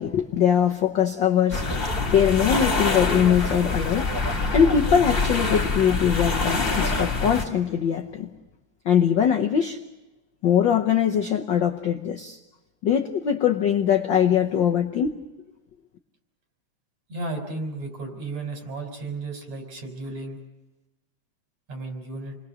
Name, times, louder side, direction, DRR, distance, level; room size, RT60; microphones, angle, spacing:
voice 1, 0.0-1.7 2.0-4.1 4.5-8.3 8.8-9.8 10.4-12.4 12.8-15.2, left 8 dB, 70° left, 3 dB, 1.1 m, -22 dB
sound 1, 1.5-7.4, left 3 dB, 20° left, 1.9 m, -25 dB
voice 2, 17.1-20.4 21.7-22.4, right 2 dB, 60° right, 4 dB, 5.2 m, -34 dB
28.5 x 20.5 x 6.4 m, 1.0 s
omnidirectional pair, 3.4 m